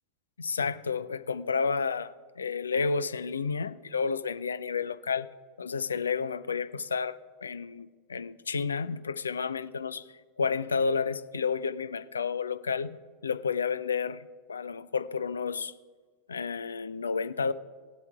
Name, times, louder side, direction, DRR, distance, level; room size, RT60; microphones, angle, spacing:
voice 1, 0.4-5.3 5.6-10.1 10.4-13.0 13.2-15.7 16.3-17.5, left 5 dB, 75° left, 14 dB, 0.3 m, -31 dB
17.5 x 8.2 x 2.3 m, 1.5 s
figure-of-eight pair, 85°, 0 cm